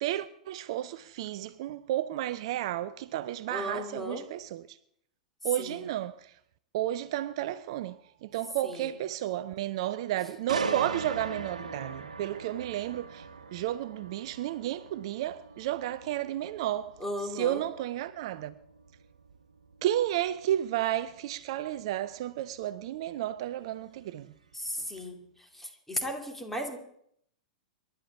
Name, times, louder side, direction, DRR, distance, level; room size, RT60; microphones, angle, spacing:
voice 1, 0.0-4.8 5.4-6.3 6.7-13.3 13.5-16.9 17.2-18.5 19.8-24.3, right 13 dB, 50° right, 0.5 m, -32 dB
voice 2, 3.5-4.2 5.6-5.9 8.6-8.9 17.0-17.6 24.5-25.2 25.5-26.8, equal, 5° left, 2.6 m, -35 dB
sound 1, 10.5-24.3 24.7-25.0, right 4 dB, 70° right, 1.3 m, -41 dB
27.0 x 12.0 x 3.6 m
figure-of-eight pair, 100°, 4 cm